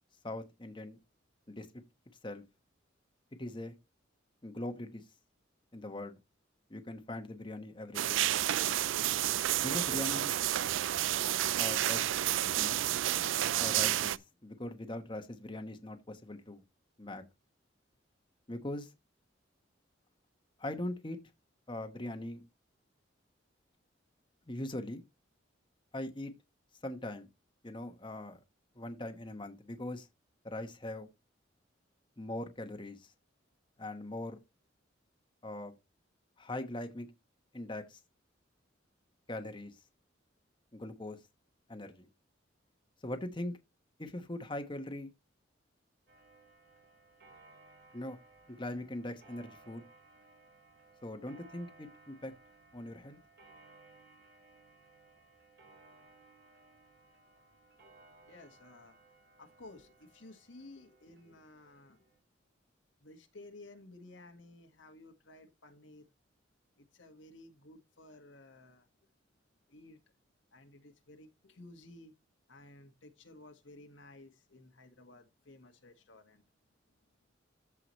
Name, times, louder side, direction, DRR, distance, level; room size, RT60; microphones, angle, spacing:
voice 1, 0.2-1.0 1.5-1.7 2.2-2.4 3.4-3.7 4.4-5.0 5.7-6.2 6.7-8.3 9.6-10.4 11.6-12.1 12.5-12.8 13.6-16.6 17.0-17.2 18.5-18.9 20.6-21.2 21.7-22.4 24.5-25.0 25.9-26.3 26.8-27.3 27.6-28.4 28.7-30.1 30.4-31.1 32.2-33.1 33.8-34.4 35.4-35.7 36.4-37.1 37.5-38.0 39.3-39.7 40.7-41.2 41.7-42.1 43.0-43.6 44.0-45.1 47.9-48.2 48.5-49.8 51.0-52.3 52.7-53.2, left 1 dB, 25° left, 1.1 m, -41 dB
sound 1, 7.9-14.2, right 13 dB, 85° right, 0.4 m, -30 dB
sound 2, 12.7-14.5, equal, 10° right, 1.1 m, -58 dB
Clock, 46.1-62.2, right 3 dB, 60° right, 4.0 m, -61 dB
voice 2, 58.2-58.9 59.4-62.0 63.0-66.1 66.8-68.9 69.7-70.0 70.5-72.1 72.5-76.4, left 2 dB, 90° left, 1.7 m, -55 dB
14.0 x 4.8 x 3.1 m
head